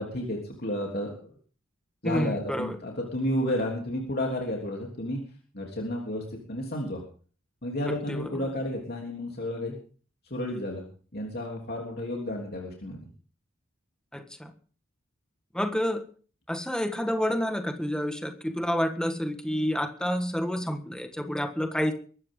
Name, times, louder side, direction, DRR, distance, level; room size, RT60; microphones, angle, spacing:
voice 1, 0.0-1.3 2.0-5.2 5.5-6.2 6.5-7.0 7.6-9.8 10.2-10.8 11.1-13.1, left 1 dB, 50° left, -1 dB, 3.3 m, -31 dB
voice 2, 2.0-2.8 7.9-8.4 14.1-14.5 15.5-16.1 16.5-21.9, equal, 5° left, 6 dB, 1.6 m, -29 dB
22.5 x 12.5 x 3.8 m, 0.41 s
head